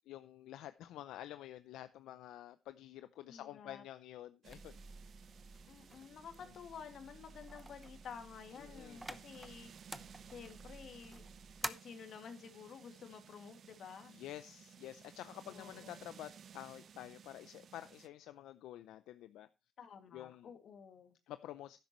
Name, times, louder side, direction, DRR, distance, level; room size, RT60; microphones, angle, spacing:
voice 1, 0.1-4.8 6.4-6.5 8.6-9.0 14.1-19.5 20.1-20.5 21.3-21.8, left 13 dB, 90° left, 0.5 m, -49 dB
voice 2, 3.3-3.8 5.6-9.7 10.2-11.2 11.6-14.1 15.5-16.0 19.8-21.2, left 7 dB, 65° left, 2.3 m, -51 dB
sound 1, 4.4-18.1, right 8 dB, 60° right, 0.5 m, -58 dB
sound 2, 4.5-11.7, right 1 dB, 10° right, 0.9 m, -50 dB
12.0 x 10.0 x 3.1 m
cardioid pair, 90°, 0 cm